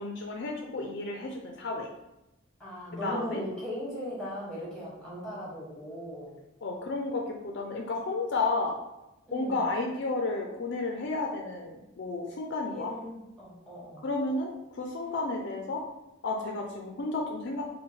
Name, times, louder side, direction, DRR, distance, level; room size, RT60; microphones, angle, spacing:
voice 1, 0.0-1.9 3.0-3.4 6.6-8.8 9.3-12.9 14.0-15.8 16.2-17.6, left 3 dB, 55° left, 1 dB, 0.4 m, -32 dB
voice 2, 2.6-6.4 9.3-9.7 12.7-14.1, equal, 5° left, -6 dB, 1.2 m, -38 dB
3.7 x 2.2 x 4.2 m, 0.94 s
head